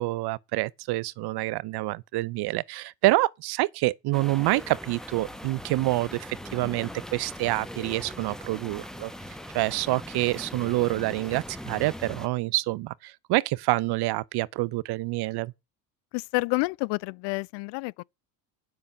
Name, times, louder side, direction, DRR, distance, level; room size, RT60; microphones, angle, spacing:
voice 1, 0.0-9.1 9.5-15.5, right 19 dB, 55° right, 0.6 m, -27 dB
sound 1, 4.1-12.3, equal, ahead, 1.2 m, -40 dB
voice 2, 16.1-18.0, left 25 dB, 60° left, 0.5 m, -29 dB
8.5 x 5.8 x 6.8 m
hypercardioid pair, 75°, 49 cm